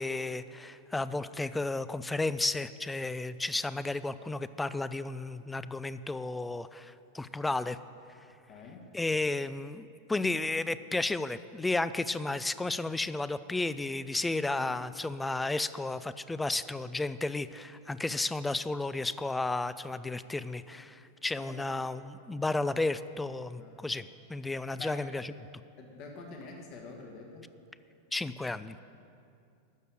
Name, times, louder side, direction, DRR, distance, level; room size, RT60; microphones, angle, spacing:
voice 1, 0.0-7.8 8.9-25.2 28.1-28.8, left 2 dB, 10° left, 15 dB, 0.4 m, -33 dB
voice 2, 8.5-8.9 14.4-14.7 21.3-21.6 22.6-22.8 23.6-23.8 24.8-25.0 25.8-27.4, left 3 dB, 40° left, 1 dB, 1.6 m, -46 dB
13.0 x 6.8 x 8.7 m, 2.5 s
figure-of-eight pair, 90°, 0 cm